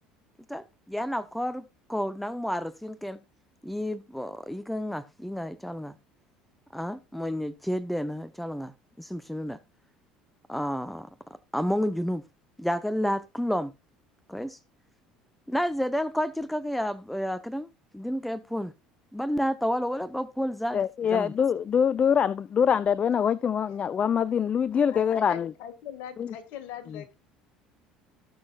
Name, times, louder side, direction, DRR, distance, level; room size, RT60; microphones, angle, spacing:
voice 1, 0.5-3.2 3.6-5.9 6.7-9.6 10.5-11.1 11.5-12.2 12.6-13.7 14.3-14.6 15.5-18.7 19.1-20.8 21.1-21.3, equal, 5° left, 0.9 m, -30 dB
voice 2, 20.7-25.5 26.2-26.3 26.9-27.0, left 7 dB, 40° left, 0.5 m, -24 dB
voice 3, 24.9-27.1, left 9 dB, 65° left, 2.2 m, -41 dB
18.5 x 6.3 x 2.5 m
hypercardioid pair, 70°, 3 cm